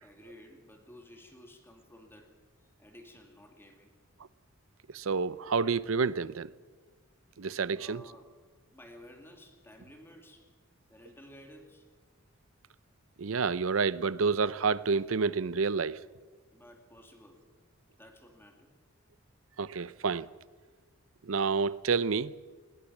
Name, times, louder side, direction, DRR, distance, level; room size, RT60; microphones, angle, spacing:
voice 1, 0.0-2.3 2.6-3.9 7.8-8.3 8.7-10.5 10.9-11.9 16.5-17.4 18.0-18.7, left 1 dB, 10° left, 2.3 m, -53 dB
voice 2, 4.9-6.5 7.4-8.0 13.2-16.0 19.6-20.3 21.2-22.3, right 5 dB, 75° right, 0.6 m, -29 dB
20.5 x 18.5 x 7.3 m
head